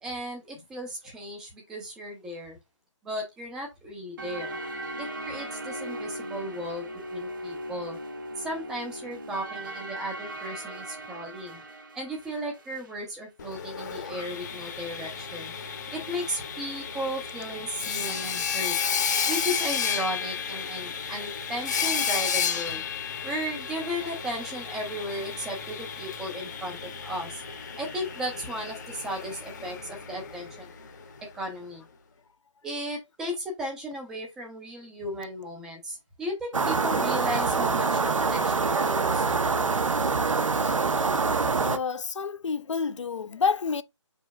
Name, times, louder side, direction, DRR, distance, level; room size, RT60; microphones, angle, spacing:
voice 1, 0.0-2.6 3.0-4.6 5.0-8.0 8.4-11.6 11.9-15.5 15.9-18.8 19.3-22.8 23.2-26.8 27.0-27.4 27.8-30.7 31.2-31.8 32.6-39.6, equal, 5° right, 0.5 m, -35 dB
sound 1, 4.2-13.0, right 1 dB, 40° right, 1.0 m, -38 dB
Sawing, 13.4-31.2, left 7 dB, 35° left, 0.9 m, -32 dB
sound 2, 36.5-41.8, right 4 dB, 80° right, 0.9 m, -25 dB
voice 2, 41.6-43.8, left 5 dB, 70° left, 0.6 m, -29 dB
5.2 x 4.5 x 2.3 m
figure-of-eight pair, 160°, 16 cm